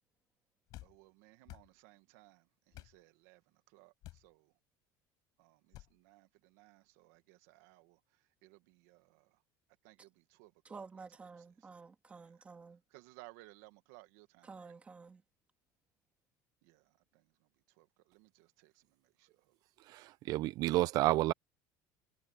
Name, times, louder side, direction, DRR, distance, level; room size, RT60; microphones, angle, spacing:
sound 1, 0.7-1.0 1.5-1.7 2.7-3.0 4.0-4.3 5.7-5.9, left 16 dB, 50° left, 4.6 m, -51 dB
voice 1, 0.8-3.4 3.7-4.5 5.4-8.0 8.4-9.4 9.8-10.8 11.6-11.7 12.2-12.3 12.9-14.7 16.6-17.2 17.8-19.5 20.0-20.1, right 21 dB, 85° right, 1.9 m, -61 dB
voice 2, 10.6-12.8 14.4-15.2, right 4 dB, 15° right, 1.9 m, -51 dB
voice 3, 19.9-21.3, right 17 dB, 45° right, 0.5 m, -30 dB
cardioid pair, 175°, 9 cm